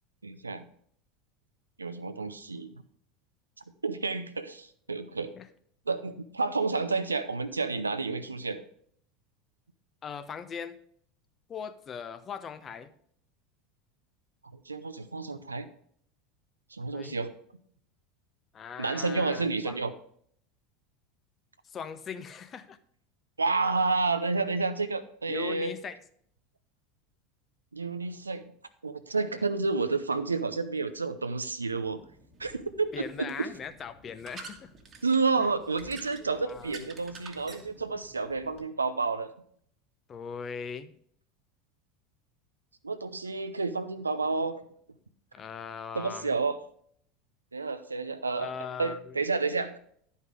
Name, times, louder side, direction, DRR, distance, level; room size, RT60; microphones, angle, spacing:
voice 1, 0.2-0.6 1.8-2.7 3.8-5.3 5.9-8.6 14.7-15.7 16.7-17.3 18.8-19.9 23.4-25.7 27.7-28.5 28.8-32.0 32.4-33.5 35.0-39.3 42.8-44.6 45.9-46.6 47.5-48.5 48.8-49.8, right 4 dB, 85° right, 10 dB, 0.6 m, -30 dB
voice 2, 10.0-10.8 11.5-12.9 16.9-17.2 18.5-19.8 21.6-22.8 25.3-26.0 29.4-29.5 32.9-34.7 35.4-35.5 36.4-36.7 40.1-41.0 45.3-46.3 48.4-49.2, left 6 dB, 30° left, 11 dB, 0.8 m, -40 dB
sound 1, 31.7-38.6, right 3 dB, 30° right, 1.4 m, -50 dB
11.0 x 5.6 x 4.8 m, 0.64 s
figure-of-eight pair, 80°, 0 cm